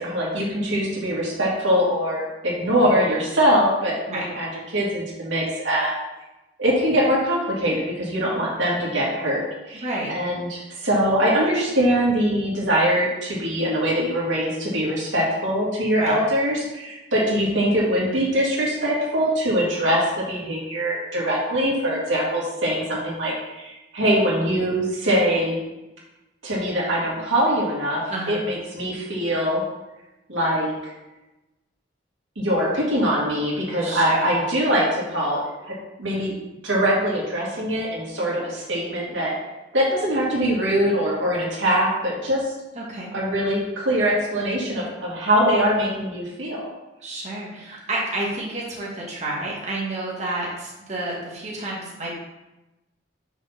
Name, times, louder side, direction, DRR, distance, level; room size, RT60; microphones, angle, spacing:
voice 1, 0.0-4.5 4.7-5.9 6.6-9.4 9.7-9.8 10.1-25.6 26.4-28.0 28.3-29.6 30.3-30.7 32.4-36.3 36.6-39.3 39.7-42.4 43.1-46.6, equal, 90° right, -5 dB, 2.4 m, -22 dB
voice 2, 9.7-10.1 16.0-16.2 28.1-28.4 33.8-34.3 42.7-43.1 47.0-52.1, right 2 dB, 40° right, -4 dB, 1.6 m, -30 dB
6.0 x 4.2 x 5.9 m, 1.0 s
head